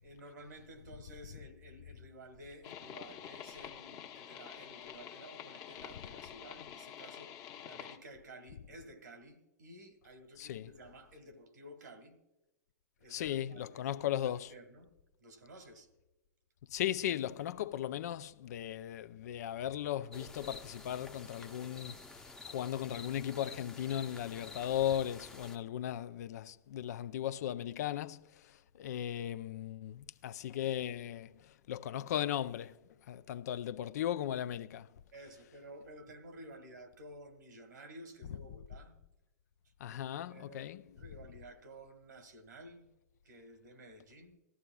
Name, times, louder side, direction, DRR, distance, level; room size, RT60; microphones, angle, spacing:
voice 1, 0.0-7.3 7.6-12.2 13.0-14.9 15.2-15.9 25.4-25.7 35.1-39.0 39.9-42.9 43.2-44.4, right 1 dB, 85° right, 1.7 m, -53 dB
sound 1, 2.6-8.0, left 9 dB, 40° left, 1.0 m, -48 dB
voice 2, 10.4-10.7 13.1-14.5 16.7-32.8 33.1-34.9 39.8-40.8, left 11 dB, 65° left, 0.4 m, -37 dB
sound 2, 20.1-25.6, left 3 dB, 5° left, 0.7 m, -50 dB
17.5 x 14.0 x 2.3 m
hypercardioid pair, 115°, 9 cm